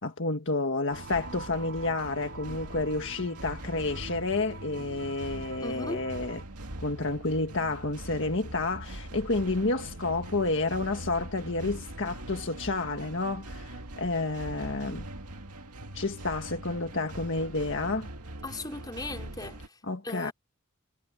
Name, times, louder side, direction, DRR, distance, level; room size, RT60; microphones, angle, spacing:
voice 1, 0.0-6.4 6.8-15.1 15.9-18.1 19.9-20.3, left 3 dB, 55° left, 1.7 m, -30 dB
sound 1, 0.9-6.4, right 4 dB, 55° right, 4.3 m, -46 dB
sound 2, 0.9-19.7, right 1 dB, 85° right, 2.2 m, -42 dB
voice 2, 5.6-6.0 18.4-19.7 20.0-20.3, left 2 dB, 20° left, 3.8 m, -37 dB
head